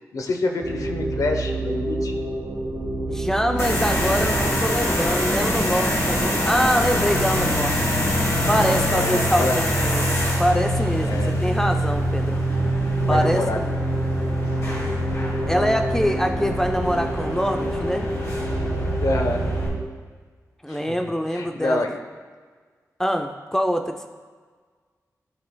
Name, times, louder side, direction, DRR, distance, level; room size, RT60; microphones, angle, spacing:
voice 1, 0.0-2.1 8.9-9.6 11.0-11.3 13.0-13.6 15.6-15.7 19.0-19.5 20.7-22.0, left 2 dB, 65° left, 4 dB, 0.7 m, -27 dB
sound 1, 0.6-19.9, right 3 dB, 55° right, 0.8 m, -28 dB
voice 2, 3.1-7.9 8.5-12.4 13.1-13.7 15.5-18.1 18.3-18.5 20.6-21.9 23.0-24.1, equal, 5° left, 5 dB, 0.4 m, -24 dB
sound 2, 3.5-9.2, left 1 dB, 30° left, 1.7 m, -31 dB
sound 3, 3.6-19.7, left 2 dB, 50° left, 1.5 m, -26 dB
12.0 x 4.2 x 2.3 m, 1.5 s
wide cardioid pair, 90°, 6 cm